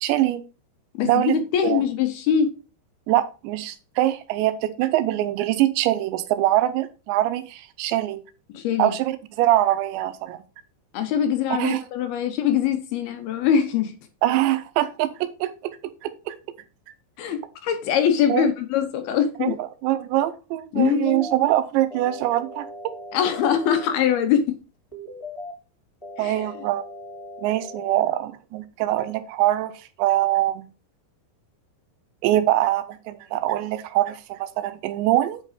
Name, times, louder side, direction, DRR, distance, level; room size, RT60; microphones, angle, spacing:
voice 1, 0.0-0.4 1.0-1.4 1.6-1.8 3.1-8.2 8.8-10.4 11.5-11.8 14.2-15.8 16.0-16.3 18.3-18.5 19.4-22.7 26.2-26.8 27.4-30.7 32.2-35.4, right 14 dB, 85° right, 3.0 m, -23 dB
voice 2, 0.9-2.5 8.5-8.9 10.9-13.9 17.2-19.6 20.7-21.3 23.1-24.5 26.2-26.4, left 8 dB, 70° left, 2.6 m, -23 dB
sound 1, 20.7-21.3 21.9-23.9 24.9-25.5 26.0-28.0, left 1 dB, 10° left, 1.8 m, -38 dB
8.4 x 5.3 x 5.0 m
omnidirectional pair, 5.0 m